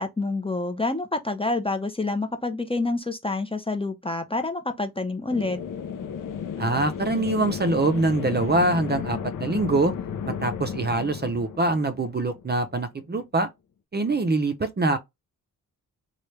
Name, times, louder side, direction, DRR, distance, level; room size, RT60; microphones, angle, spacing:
voice 1, 0.0-5.6, left 2 dB, 15° left, 0.6 m, -27 dB
sound 1, 5.3-12.8, left 7 dB, 60° left, 0.6 m, -33 dB
voice 2, 6.6-9.9 10.3-13.5 13.9-15.0, right 2 dB, 30° right, 0.6 m, -24 dB
3.2 x 2.4 x 3.1 m
cardioid pair, 60°, 36 cm